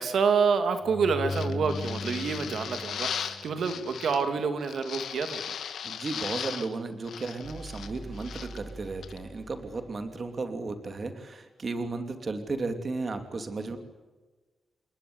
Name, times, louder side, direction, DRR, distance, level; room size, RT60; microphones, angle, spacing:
voice 1, 0.0-5.6, right 5 dB, 65° right, 8 dB, 2.9 m, -27 dB
sound 1, 0.8-4.0, left 3 dB, 20° left, 7.1 m, -37 dB
sound 2, 1.3-4.3 4.6-6.8 7.0-8.6 9.0-9.2, left 8 dB, 80° left, 2.1 m, -37 dB
voice 2, 5.8-13.8, right 3 dB, 35° right, 7 dB, 2.8 m, -34 dB
sound 3, 7.4-11.2, right 2 dB, 20° right, 4.6 m, -45 dB
29.5 x 20.0 x 9.7 m, 1.2 s
wide cardioid pair, 170°, 0 cm